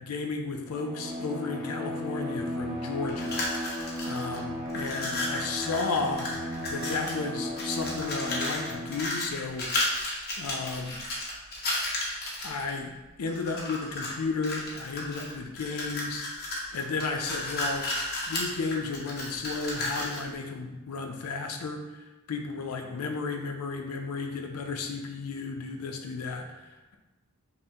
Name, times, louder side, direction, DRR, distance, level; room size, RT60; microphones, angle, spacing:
voice 1, 0.0-3.3 3.6-3.8 4.0-6.3 6.7-9.7 10.4-11.0 12.4-16.2 16.7-17.9 18.3-27.0, left 4 dB, 90° left, 3 dB, 0.5 m, -33 dB
Bowed string instrument, 0.7-9.2, left 1 dB, ahead, 0.5 m, -35 dB
sound 1, 3.1-4.4 4.7-7.2 7.6-12.7 13.3-14.1 14.4-20.3, left 2 dB, 45° left, 0.8 m, -33 dB
5.4 x 2.1 x 2.8 m, 1.1 s
head